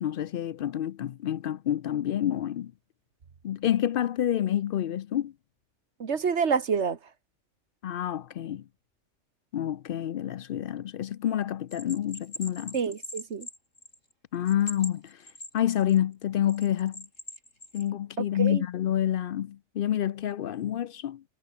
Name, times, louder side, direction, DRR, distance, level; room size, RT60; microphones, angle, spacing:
voice 1, 0.0-2.7 3.4-5.3 7.8-8.6 9.5-12.8 14.3-15.2 15.5-17.1 17.7-21.2, left 11 dB, 60° left, 0.6 m, -28 dB
voice 2, 6.0-7.0 12.7-13.5 18.2-18.6, right 6 dB, 65° right, 1.7 m, -28 dB
Bell, 11.7-14.1 14.5-16.0 16.5-17.9, left 1 dB, 85° left, 8.4 m, -41 dB
omnidirectional pair, 1.3 m